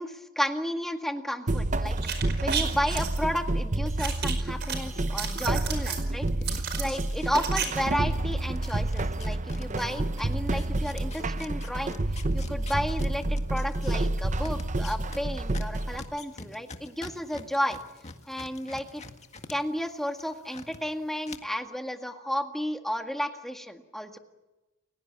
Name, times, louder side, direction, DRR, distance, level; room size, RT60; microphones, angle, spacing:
voice 1, 0.0-12.0 12.3-17.8 18.3-19.0 19.5-24.2, equal, ahead, 5 dB, 1.8 m, -32 dB
sound 1, 1.5-16.0, right 2 dB, 35° right, 0.8 m, -29 dB
sound 2, 2.0-3.2 4.0-4.8 5.1-6.0 6.4-7.7 7.9-8.0, right 8 dB, 55° right, 5.0 m, -32 dB
sound 3, 4.2-7.8 8.1-19.5 19.9-20.8 21.2-21.4, left 3 dB, 35° left, 1.8 m, -45 dB
30.0 x 17.0 x 8.7 m, 1.1 s
head